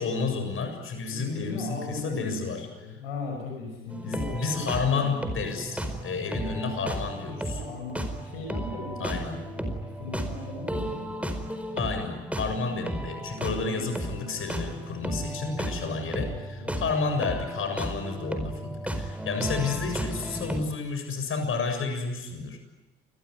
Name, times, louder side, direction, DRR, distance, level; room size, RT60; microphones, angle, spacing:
voice 1, 0.0-3.0 4.0-7.6 9.0-9.4 11.8-22.6, left 4 dB, 45° left, 6 dB, 7.2 m, -31 dB
voice 2, 1.1-4.9 7.5-9.2 9.5-11.1 15.0-16.9, left 3 dB, 70° left, 3 dB, 5.9 m, -39 dB
sound 1, 3.9-20.6, right 1 dB, 5° right, 4.8 m, -34 dB
28.0 x 21.0 x 9.9 m, 1.1 s
figure-of-eight pair, 50°, 30 cm